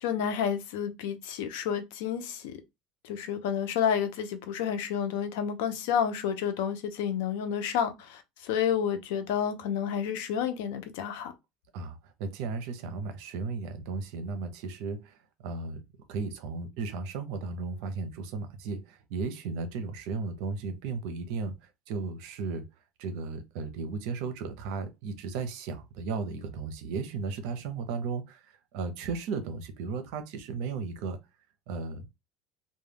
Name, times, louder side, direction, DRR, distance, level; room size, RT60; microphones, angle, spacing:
voice 1, 0.0-2.5 3.0-11.3, left 8 dB, 85° left, 0.5 m, -30 dB
voice 2, 11.7-15.8 16.1-22.7 23.0-31.2 31.7-32.1, right 4 dB, 70° right, 0.6 m, -35 dB
2.2 x 2.1 x 3.3 m
supercardioid pair, 135°, 0 cm